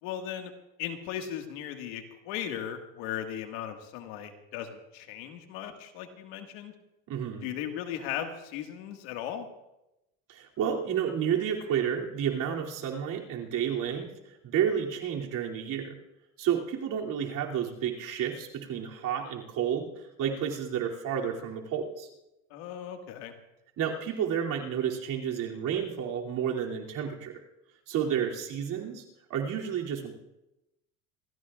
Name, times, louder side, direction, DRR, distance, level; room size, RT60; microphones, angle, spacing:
voice 1, 0.0-0.5 0.8-6.7 7.4-9.5 22.5-23.4, left 10 dB, 80° left, 5 dB, 1.9 m, -37 dB
voice 2, 7.1-7.5 10.3-16.0 16.4-22.1 23.8-27.4 27.9-29.0 29.3-30.1, right 8 dB, 60° right, 0 dB, 2.9 m, -31 dB
27.5 x 14.5 x 2.4 m, 0.92 s
supercardioid pair, 100°, 36 cm